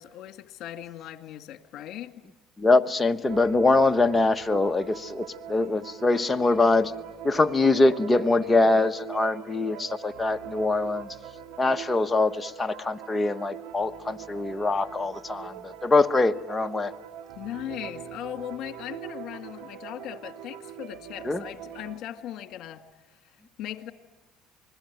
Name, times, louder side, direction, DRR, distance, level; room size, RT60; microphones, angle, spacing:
voice 1, 0.0-2.2 17.4-22.8 23.6-23.9, left 11 dB, 60° left, 8 dB, 1.9 m, -38 dB
voice 2, 2.6-6.9 7.2-11.1 11.6-16.9 21.2-21.4, left 2 dB, 15° left, 8 dB, 1.2 m, -23 dB
sound 1, 3.3-22.0, right 10 dB, 75° right, 2.2 m, -42 dB
28.0 x 21.0 x 9.2 m, 1.1 s
supercardioid pair, 95°, 0 cm